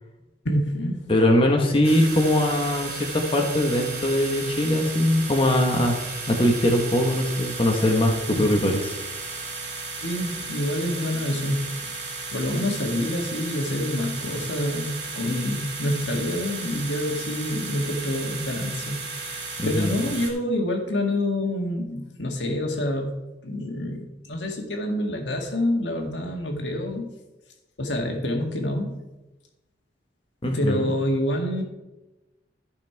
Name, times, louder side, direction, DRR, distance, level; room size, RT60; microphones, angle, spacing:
voice 1, 0.5-1.1 8.4-8.6 10.0-11.9 12.3-23.1 23.4-27.1 27.8-29.0 30.4-31.6, left 1 dB, 75° left, 2 dB, 1.9 m, -27 dB
voice 2, 1.1-6.0 6.3-9.0 19.6-19.9 30.4-30.9, left 1 dB, 30° left, 1 dB, 1.1 m, -21 dB
sound 1, 1.8-20.3, right 3 dB, 70° right, 3.1 m, -34 dB
13.5 x 5.5 x 4.6 m, 1.0 s
head